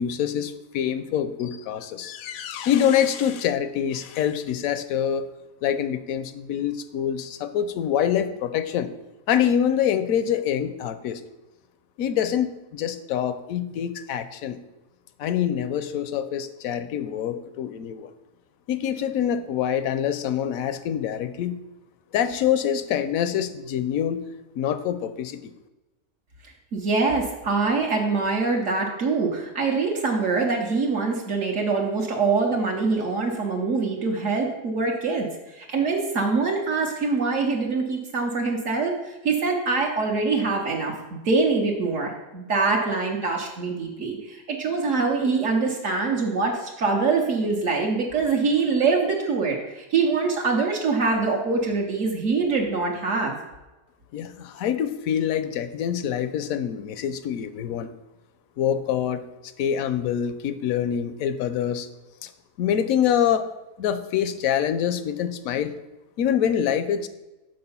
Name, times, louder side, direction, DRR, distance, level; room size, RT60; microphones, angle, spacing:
voice 1, 0.0-5.3 5.6-8.9 9.3-11.2 12.0-14.6 15.2-18.1 18.7-21.6 22.1-24.2 24.6-25.4 54.1-57.9 58.6-59.2 59.6-61.9 62.2-62.3 62.6-63.5 63.8-65.7 66.2-67.1, left 9 dB, 80° left, 11 dB, 1.0 m, -25 dB
voice 2, 26.7-35.3 35.5-53.4, right 4 dB, 70° right, 0 dB, 1.2 m, -24 dB
6.7 x 4.3 x 5.5 m, 1.1 s
omnidirectional pair, 1.4 m